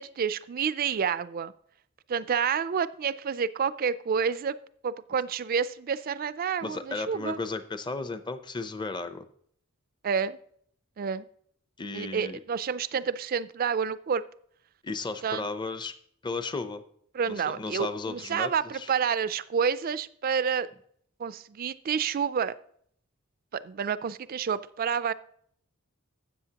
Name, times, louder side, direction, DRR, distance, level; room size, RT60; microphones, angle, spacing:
voice 1, 0.0-1.5 2.1-4.6 4.8-7.4 10.0-10.4 11.0-11.3 11.9-14.2 15.2-15.4 17.1-20.7 21.2-22.5 23.5-25.1, right 6 dB, 45° right, 16 dB, 0.4 m, -29 dB
voice 2, 6.6-9.2 11.8-12.4 14.8-15.9 16.2-16.8 17.3-18.9, left 3 dB, 20° left, 10 dB, 0.6 m, -34 dB
12.5 x 7.9 x 2.9 m, 0.64 s
head